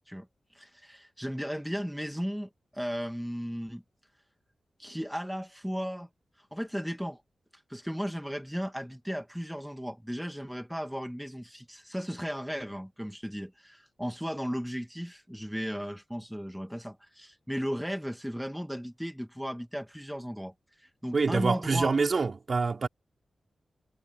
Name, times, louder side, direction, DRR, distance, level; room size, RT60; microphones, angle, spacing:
voice 1, 0.5-3.8 4.8-6.1 6.4-7.2 7.5-21.9, equal, ahead, 1.7 m, -35 dB
voice 2, 21.1-22.9, right 4 dB, 45° right, 3.6 m, -26 dB
wide cardioid pair, 125°, 0 cm